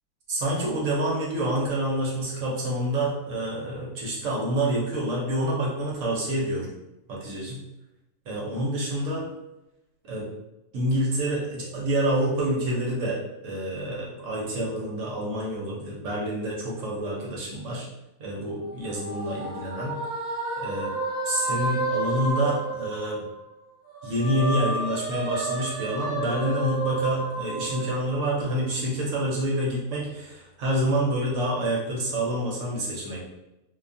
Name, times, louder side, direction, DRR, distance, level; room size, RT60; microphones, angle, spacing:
voice 1, 0.3-6.7 7.1-7.6 8.3-9.2 10.0-10.3 10.7-17.9 18.2-19.9 20.6-20.9 21.2-23.2 24.0-33.2, right 1 dB, 65° right, -4 dB, 0.9 m, -27 dB
sound 1, 18.5-23.5 23.9-28.6, right 2 dB, 35° right, 1.0 m, -31 dB
2.7 x 2.2 x 2.5 m, 0.92 s
omnidirectional pair, 1.6 m